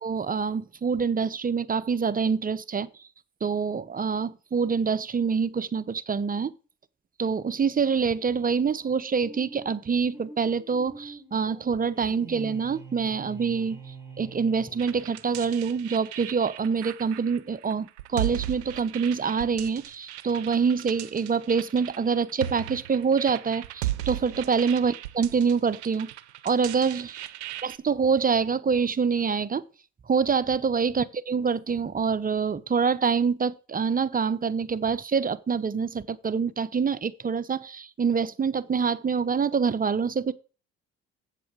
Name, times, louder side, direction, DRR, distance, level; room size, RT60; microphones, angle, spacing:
voice 1, 0.0-2.9 3.4-6.5 7.2-26.1 26.4-27.2 27.6-29.6 30.1-40.3, right 5 dB, 25° right, 0.8 m, -26 dB
sound 1, 8.0-15.5, right 2 dB, 5° right, 5.0 m, -46 dB
sound 2, 14.8-27.8, right 13 dB, 90° right, 0.6 m, -37 dB
8.2 x 7.5 x 4.7 m
hypercardioid pair, 55°, 33 cm